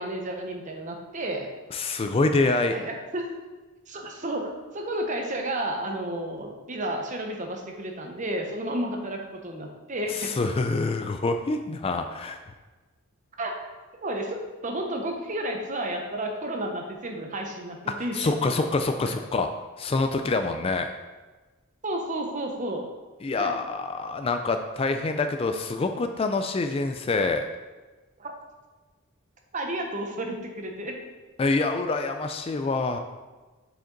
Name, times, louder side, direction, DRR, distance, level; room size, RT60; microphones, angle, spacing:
voice 1, 0.0-1.5 2.7-3.3 3.9-10.3 13.4-13.6 14.0-14.4 14.6-18.3 21.8-22.8 23.4-23.5 28.2-28.3 29.5-30.9, right 1 dB, 35° right, 2 dB, 0.9 m, -32 dB
voice 2, 1.7-2.8 10.1-12.4 18.1-19.5 19.8-20.9 23.2-27.4 31.4-33.0, left 3 dB, 25° left, 7 dB, 0.3 m, -26 dB
7.2 x 5.1 x 3.9 m, 1.3 s
head